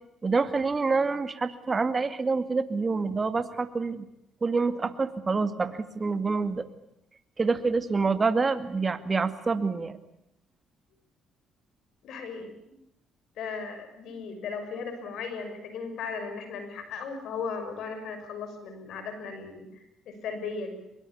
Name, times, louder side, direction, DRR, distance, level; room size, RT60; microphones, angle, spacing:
voice 1, 0.2-4.1 4.4-6.6 7.4-10.0, right 4 dB, 30° right, 10 dB, 2.2 m, -27 dB
voice 2, 12.0-12.5 13.4-20.8, left 5 dB, 75° left, 9 dB, 6.1 m, -36 dB
23.5 x 22.5 x 8.5 m, 0.81 s
cardioid pair, 80°, 0 cm